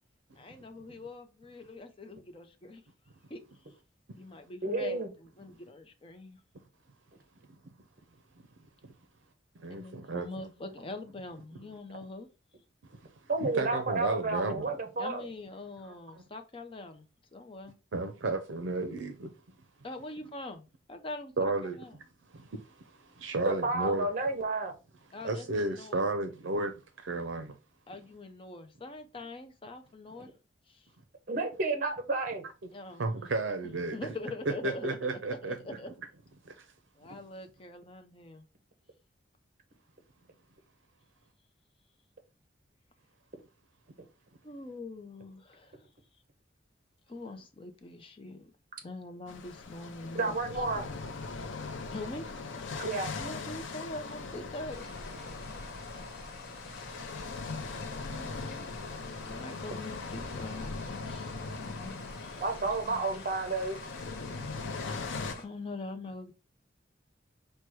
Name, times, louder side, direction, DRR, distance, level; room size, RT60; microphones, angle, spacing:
voice 1, 0.4-2.8 3.3-3.4 4.2-6.4 9.7-12.3 15.0-17.0 17.3-17.7 19.8-22.0 25.1-26.1 27.9-30.3 30.7-30.9 32.7-33.0 33.9-35.9 37.0-38.5 44.4-45.9 47.1-48.5 48.8-50.6 51.9-52.3 53.2-55.2 57.9-58.7 59.2-60.7 61.0-61.4 61.6-62.4 62.8-63.2 65.4-66.3, left 2 dB, 30° left, 0.6 m, -43 dB
voice 2, 4.6-5.1 13.3-15.2 23.4-24.7 31.3-32.4 50.1-50.9 52.8-53.1 62.4-63.8, right 3 dB, 45° right, 0.9 m, -31 dB
voice 3, 9.6-10.3 13.4-14.7 17.9-19.3 21.4-21.8 22.3-22.8 23.2-24.1 25.2-27.5 33.0-34.0 34.6-35.6 36.4-36.6, right 2 dB, 75° right, 0.6 m, -32 dB
sound 1, 49.3-65.3, left 4 dB, 85° left, 0.6 m, -40 dB
sound 2, 54.7-65.4, left 2 dB, 55° left, 1.2 m, -49 dB
4.5 x 2.2 x 4.5 m
head